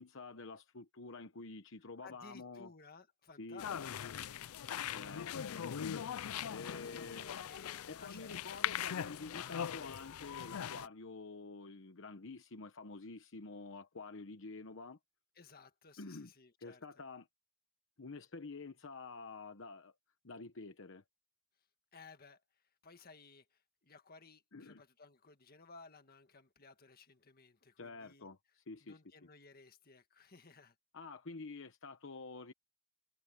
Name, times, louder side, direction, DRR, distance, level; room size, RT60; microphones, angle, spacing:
voice 1, 0.0-2.7 3.4-3.6 4.9-5.9 6.5-7.3 7.9-15.0 16.0-16.3 16.6-17.3 18.0-19.9 20.2-21.0 24.5-24.8 27.8-29.0 30.9-32.5, left 3 dB, 65° left, 1.0 m, -49 dB
voice 2, 2.0-4.1 6.5-8.4 15.4-16.9 21.9-28.3 28.8-30.8, left 4 dB, 45° left, 1.8 m, -58 dB
sound 1, 3.6-10.9, left 9 dB, 85° left, 0.4 m, -41 dB
head